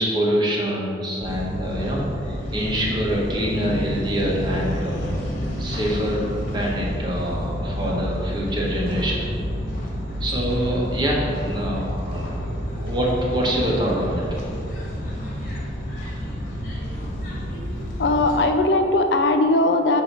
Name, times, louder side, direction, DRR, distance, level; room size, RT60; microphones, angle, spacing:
voice 1, 0.0-5.0 5.6-9.3 10.2-12.4 12.7-14.4, equal, 25° right, -4 dB, 1.2 m, -25 dB
sound 1, 1.2-18.4, equal, 45° left, 1.5 m, -29 dB
voice 2, 18.0-20.0, left 2 dB, 70° left, 5 dB, 0.5 m, -19 dB
8.5 x 2.8 x 6.0 m, 2.4 s
head